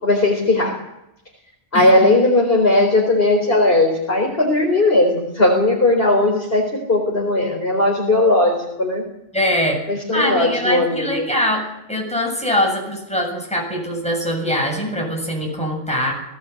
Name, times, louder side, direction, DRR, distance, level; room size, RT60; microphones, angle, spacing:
voice 1, 0.0-0.8 1.7-6.6 6.9-9.0 9.9-11.3, left 2 dB, 55° left, -1 dB, 4.5 m, -17 dB
voice 2, 9.3-9.8 10.1-11.6 11.9-16.1, equal, 5° left, 0 dB, 7.5 m, -22 dB
20.0 x 18.0 x 8.5 m, 0.85 s
omnidirectional pair, 1.2 m